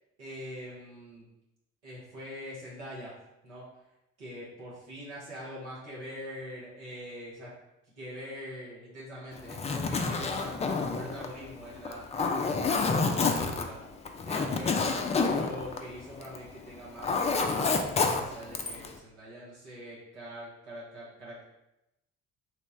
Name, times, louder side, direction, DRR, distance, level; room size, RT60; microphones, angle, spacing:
voice 1, 0.2-1.2 1.8-3.2 3.4-3.7 4.2-7.5 8.0-12.0 12.5-13.8 14.2-15.0 15.3-21.4, equal, 90° right, -6 dB, 0.8 m, -43 dB
Zipper (clothing), 9.4-16.5 16.8-18.9, left 4 dB, 20° left, 0.3 m, -29 dB
3.0 x 2.1 x 3.2 m, 0.90 s
hypercardioid pair, 50°, 34 cm